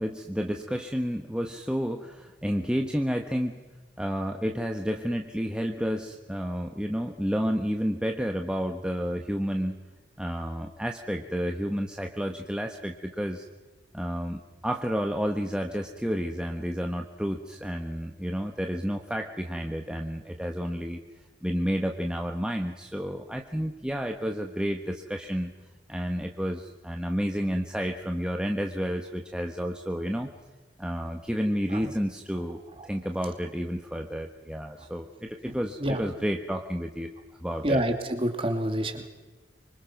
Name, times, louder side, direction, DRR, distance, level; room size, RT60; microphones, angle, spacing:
voice 1, 0.0-3.6 4.0-9.8 10.2-13.4 13.9-21.0 21.4-25.5 25.9-30.3 30.8-37.1 37.4-37.8, equal, 5° right, 3 dB, 1.1 m, -30 dB
voice 2, 37.6-39.1, right 1 dB, 30° right, 5 dB, 2.6 m, -27 dB
25.0 x 25.0 x 6.0 m, 1.2 s
head